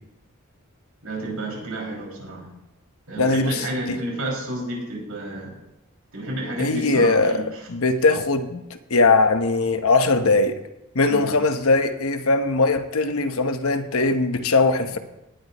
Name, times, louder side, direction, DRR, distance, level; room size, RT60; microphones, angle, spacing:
voice 1, 1.0-2.5 3.1-5.6 6.1-7.6 11.1-11.3, right 1 dB, 80° right, -2 dB, 5.7 m, -31 dB
voice 2, 3.2-4.0 6.6-7.4 7.7-10.6 10.9-15.0, left 3 dB, 75° left, 8 dB, 1.0 m, -20 dB
18.5 x 11.5 x 3.1 m, 0.91 s
head